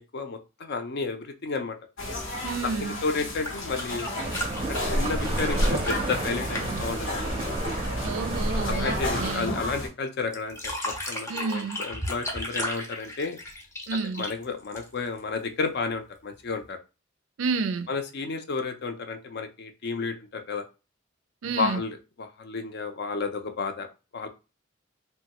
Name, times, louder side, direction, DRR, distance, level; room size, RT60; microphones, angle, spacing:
voice 1, 0.0-1.8 2.6-4.1 4.7-7.3 8.7-13.4 14.2-16.8 17.9-20.6 21.6-23.9 24.1-24.3, left 4 dB, 55° left, 0.5 m, -32 dB
sound 1, 2.0-9.9, left 1 dB, 90° left, 0.9 m, -34 dB
voice 2, 2.4-3.0 8.0-9.6 11.3-11.8 13.9-14.3 17.4-17.9 21.4-21.8, right 4 dB, 80° right, 0.4 m, -30 dB
sound 2, 3.3-7.9 10.3-15.2 16.6-16.7, left 1 dB, 15° left, 0.6 m, -35 dB
sound 3, 4.2-9.3, right 1 dB, 30° right, 0.5 m, -29 dB
3.0 x 2.2 x 2.8 m
head